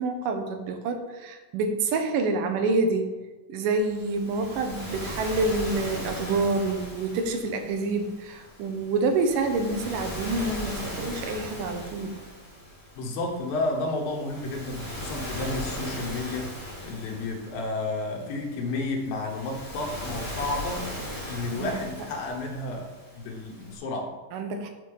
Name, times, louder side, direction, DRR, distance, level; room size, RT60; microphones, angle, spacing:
voice 1, 0.0-3.1 3.5-12.1 21.6-21.7 24.3-24.7, right 3 dB, 75° right, 5 dB, 2.3 m, -27 dB
Waves surf, 3.8-23.8, equal, 10° right, 1.5 m, -38 dB
voice 2, 13.0-16.6 16.8-20.9 21.3-24.2, left 2 dB, 75° left, -1 dB, 3.0 m, -31 dB
10.5 x 4.1 x 5.4 m, 1.2 s
omnidirectional pair, 4.3 m